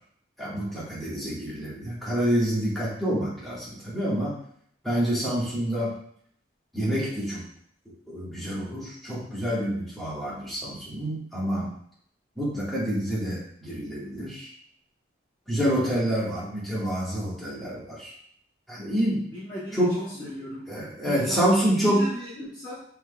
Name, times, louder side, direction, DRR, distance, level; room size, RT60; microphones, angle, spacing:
voice 1, 0.4-4.3 4.8-6.0 6.7-7.4 8.1-11.7 12.4-14.5 15.5-18.1 18.7-19.3 19.8-20.3 20.7-22.1, equal, ahead, -9 dB, 1.4 m, -27 dB
voice 2, 19.3-20.7 21.0-22.8, equal, 20° left, -10 dB, 0.9 m, -35 dB
5.6 x 3.5 x 2.2 m, 0.65 s
head